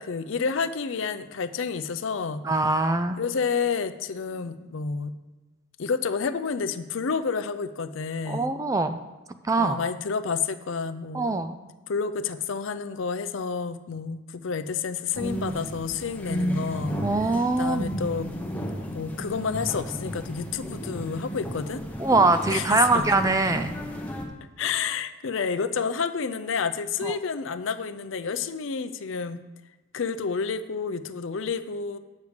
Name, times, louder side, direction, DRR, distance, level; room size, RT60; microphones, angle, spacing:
voice 1, 0.0-2.4 3.2-5.1 5.8-8.5 9.6-11.4 11.9-17.0 17.6-18.3 18.9-21.8 22.5-23.0 24.6-29.4 29.9-32.0, left 5 dB, 65° left, 11 dB, 0.5 m, -29 dB
voice 2, 2.4-3.2 8.3-9.0 9.4-9.8 11.1-11.6 17.0-17.9 22.0-23.7 27.0-27.1, right 3 dB, 15° right, 8 dB, 0.3 m, -23 dB
sound 1, 15.1-24.3, equal, 5° left, 0.9 m, -33 dB
8.3 x 6.4 x 5.1 m, 1.2 s
head